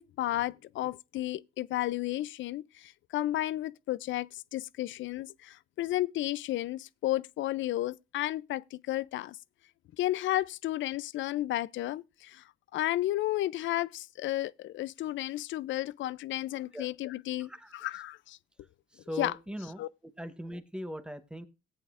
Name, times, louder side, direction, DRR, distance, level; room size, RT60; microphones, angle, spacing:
voice 1, 0.0-9.4 10.0-12.4 12.7-18.4 19.2-19.3 19.8-19.9, left 15 dB, 70° left, 0.4 m, -33 dB
voice 2, 17.4-17.8 18.9-21.5, equal, 5° right, 1.1 m, -40 dB
18.0 x 8.5 x 2.5 m
cardioid pair, 90°, 20 cm